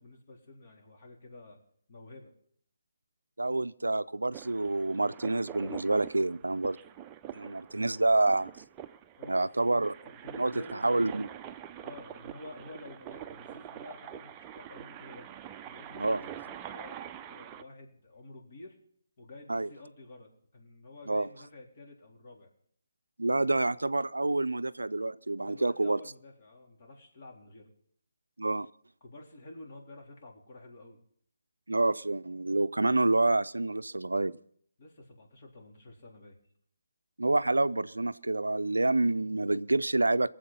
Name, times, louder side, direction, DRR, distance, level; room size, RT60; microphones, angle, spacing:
voice 1, 0.0-1.6 1.9-2.3 9.2-10.9 11.8-15.3 15.6-18.8 19.2-22.5 25.4-27.7 29.0-31.0 34.8-36.4, left 2 dB, 45° left, 3.7 m, -50 dB
voice 2, 3.4-6.8 7.3-8.5 9.3-9.9 10.4-10.5 10.8-11.3 16.0-16.2 19.5-19.7 21.1-21.3 23.2-26.0 28.4-28.7 31.7-34.4 37.2-40.3, right 2 dB, 80° right, 0.4 m, -28 dB
sound 1, 4.3-17.6, right 10 dB, 20° right, 0.6 m, -45 dB
22.0 x 7.6 x 5.6 m
figure-of-eight pair, 145°, 0 cm